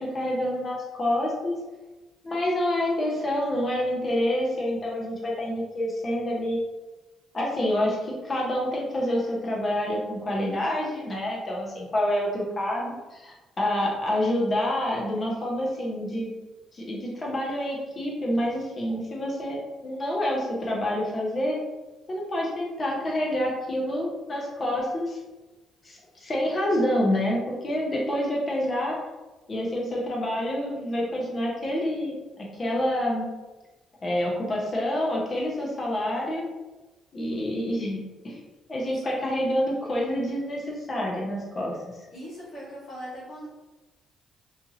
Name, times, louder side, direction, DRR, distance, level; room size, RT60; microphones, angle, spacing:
voice 1, 0.0-1.5 2.2-6.6 7.3-16.3 16.7-21.6 22.1-25.2 25.8-29.0 29.5-33.3 34.0-36.4 37.1-38.4 38.7-41.8, left 1 dB, 40° left, -3 dB, 0.9 m, -27 dB
voice 2, 42.1-43.5, equal, 65° left, -8 dB, 1.0 m, -40 dB
2.7 x 2.5 x 2.7 m, 1.1 s
hypercardioid pair, 50°, 0 cm